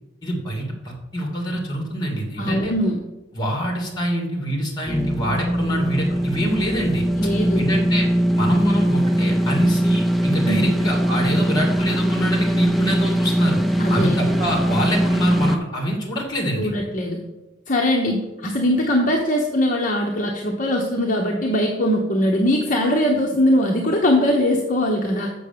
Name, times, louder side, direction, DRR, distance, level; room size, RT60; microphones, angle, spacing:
voice 1, 0.2-2.7 3.3-7.1 7.6-8.1 8.3-13.6 13.9-16.7, equal, 20° left, 1 dB, 2.4 m, -25 dB
voice 2, 2.4-3.0 7.2-7.7 10.5-10.7 13.8-14.2 16.6-17.2 17.7-25.3, left 1 dB, 40° left, 0 dB, 1.0 m, -21 dB
sound 1, 4.9-15.6, equal, ahead, 0.5 m, -21 dB
7.0 x 6.9 x 6.8 m, 1.0 s
head